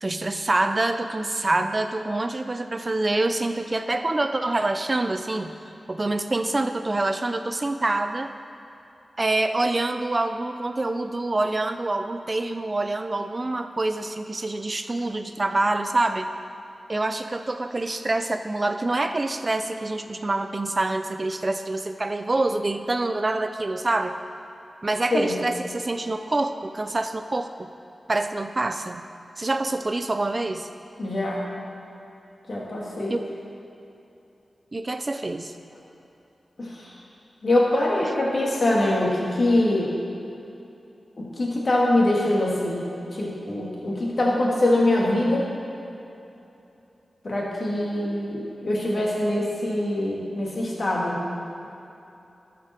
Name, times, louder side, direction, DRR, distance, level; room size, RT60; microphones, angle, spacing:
voice 1, 0.0-5.5 5.9-8.3 9.2-16.3 16.9-24.2 24.8-27.7 28.1-29.0 29.4-30.7 33.1-33.3 34.7-35.5 38.0-38.1, right 2 dB, 40° right, 8 dB, 0.5 m, -26 dB
voice 2, 31.0-31.4 32.5-33.2 36.6-36.9 37.4-39.9 41.2-42.8 43.1-45.4 47.2-51.2, left 1 dB, 60° left, -4 dB, 2.1 m, -23 dB
12.5 x 5.2 x 4.4 m, 2.9 s
cardioid pair, 50°, 0 cm